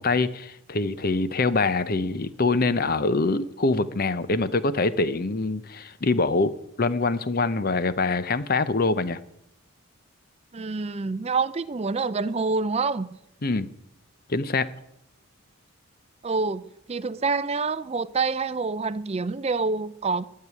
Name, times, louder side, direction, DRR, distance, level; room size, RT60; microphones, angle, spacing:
voice 1, 0.0-9.2 13.4-13.7 14.3-14.7, left 3 dB, 40° left, 0.7 m, -24 dB
voice 2, 10.5-13.1 16.2-20.3, right 4 dB, 25° right, 0.4 m, -27 dB
12.5 x 6.7 x 9.6 m
head